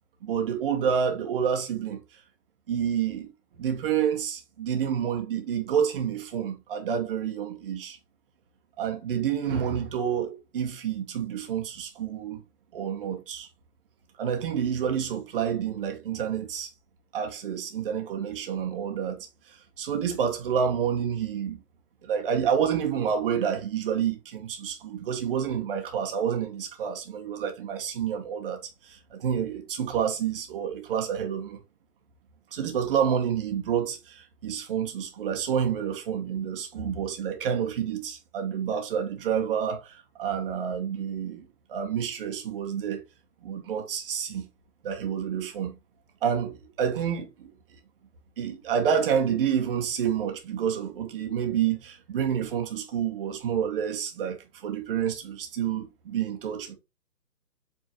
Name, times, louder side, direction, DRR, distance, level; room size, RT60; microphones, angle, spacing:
voice 1, 0.2-2.2 2.7-3.3 3.6-8.0 8.8-12.4 12.7-13.5 14.2-16.7 17.1-21.6 22.0-31.6 32.5-43.0 43.4-44.5 44.8-45.7 46.2-47.5 48.4-56.7, right 8 dB, 35° right, 1.7 m, -29 dB
7.7 x 4.4 x 2.9 m
figure-of-eight pair, 140°, 48 cm